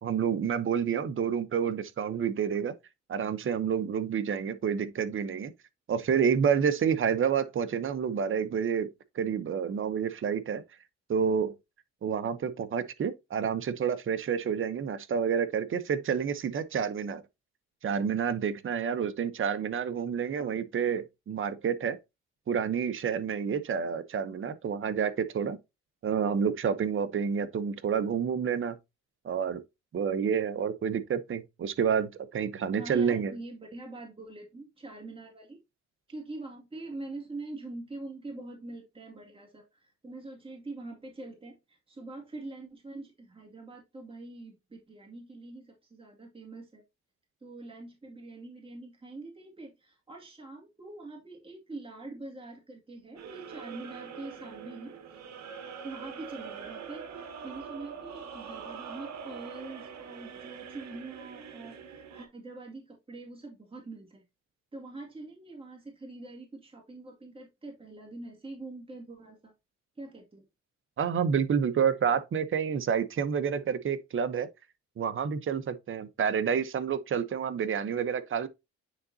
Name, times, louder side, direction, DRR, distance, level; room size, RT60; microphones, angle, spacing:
voice 1, 0.0-2.7 3.1-5.5 5.9-8.9 9.1-10.6 11.1-11.5 12.0-17.2 17.8-22.0 22.5-25.6 26.0-28.8 29.2-29.6 29.9-33.3 71.0-74.5 75.0-78.5, right 7 dB, 40° right, 0.9 m, -29 dB
voice 2, 32.8-35.6 36.1-46.8 47.4-54.9 55.8-64.3 64.7-69.5 70.0-70.4, right 2 dB, 20° right, 2.3 m, -44 dB
sound 1, 53.2-62.3, right 6 dB, 65° right, 1.4 m, -44 dB
9.5 x 3.9 x 2.7 m
cardioid pair, 90°, 30 cm